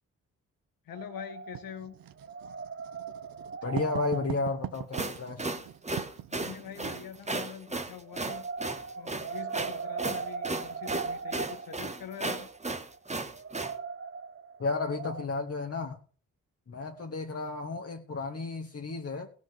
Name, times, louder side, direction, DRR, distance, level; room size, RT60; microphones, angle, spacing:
voice 1, 0.8-2.0 6.3-8.5 8.9-12.5, left 9 dB, 85° left, 1.4 m, -44 dB
sound 1, 0.9-1.9 2.2-5.3 8.0-15.3, right 5 dB, 35° right, 0.8 m, -39 dB
Writing, 1.5-7.5, right 12 dB, 85° right, 0.8 m, -41 dB
voice 2, 3.6-5.4 14.6-16.0 16.7-19.3, left 3 dB, 45° left, 1.6 m, -33 dB
sound 2, 4.7-13.7, right 2 dB, 20° right, 1.3 m, -35 dB
16.5 x 6.5 x 7.4 m
cardioid pair, 60°, 34 cm